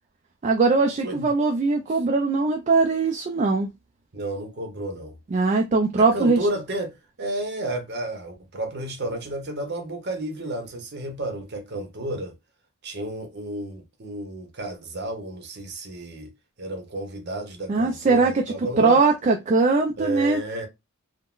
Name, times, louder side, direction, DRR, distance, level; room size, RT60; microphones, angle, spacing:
voice 1, 0.4-3.7 5.3-6.5 17.7-20.4, right 3 dB, 35° right, 0.3 m, -21 dB
voice 2, 4.1-5.2 6.0-12.3 12.8-19.0 20.0-20.7, right 1 dB, 50° right, 0.8 m, -32 dB
3.6 x 2.1 x 2.3 m
head